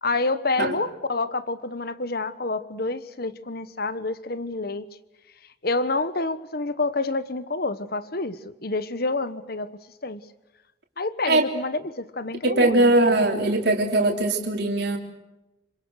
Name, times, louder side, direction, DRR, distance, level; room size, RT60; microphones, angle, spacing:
voice 1, 0.0-4.9 5.6-9.7 10.0-10.2 11.0-13.2, left 3 dB, 50° left, 13 dB, 1.2 m, -28 dB
voice 2, 12.4-15.0, right 2 dB, 55° right, 1 dB, 3.5 m, -20 dB
27.5 x 25.5 x 6.5 m, 0.98 s
head